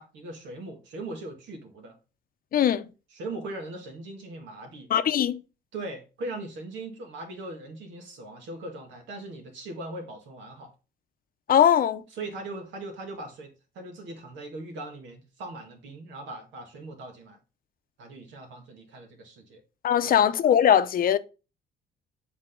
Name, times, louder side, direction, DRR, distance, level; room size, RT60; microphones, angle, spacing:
voice 1, 0.0-2.0 3.1-4.9 5.7-10.7 12.1-17.4 18.0-19.6 20.0-20.3, right 2 dB, 85° right, 2.1 m, -40 dB
voice 2, 2.5-2.9 4.9-5.4 11.5-12.0 19.8-21.2, left 9 dB, 50° left, 0.6 m, -20 dB
7.5 x 4.1 x 3.7 m
cardioid pair, 110°, 19 cm